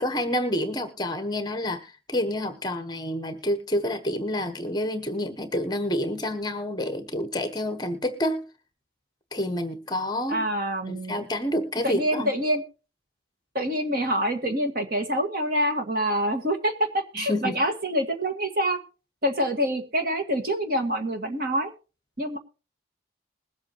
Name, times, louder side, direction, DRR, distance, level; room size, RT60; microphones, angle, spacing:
voice 1, 0.0-8.5 9.3-10.4 10.9-12.3 17.1-17.5, left 1 dB, 20° left, 1.1 m, -28 dB
voice 2, 10.3-11.3 11.8-12.6 13.5-18.8 19.2-21.7 22.2-22.4, equal, 50° right, 1.9 m, -26 dB
21.0 x 8.1 x 3.0 m
head